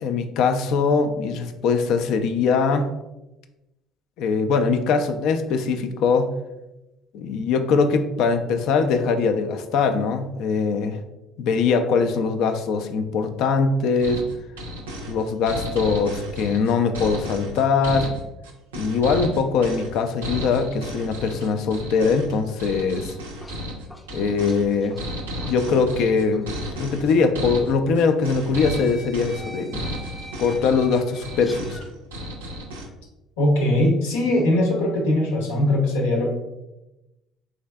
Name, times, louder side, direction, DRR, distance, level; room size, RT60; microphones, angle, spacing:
voice 1, 0.0-2.9 4.2-6.3 7.1-11.0 11.4-14.2 15.1-18.1 18.7-23.1 24.1-25.0 25.5-26.5 26.8-29.8 30.4-31.8, left 5 dB, 65° left, 7 dB, 0.3 m, -22 dB
sound 1, 14.0-32.9, equal, 90° right, 0.4 m, -33 dB
sound 2, 23.2-26.1 26.3-26.5 27.6-27.7 28.6-31.9, equal, 15° left, 0.6 m, -44 dB
voice 2, 33.4-36.3, left 1 dB, 85° left, -1 dB, 0.7 m, -20 dB
3.6 x 3.2 x 2.2 m, 0.96 s
hypercardioid pair, 60°, 0 cm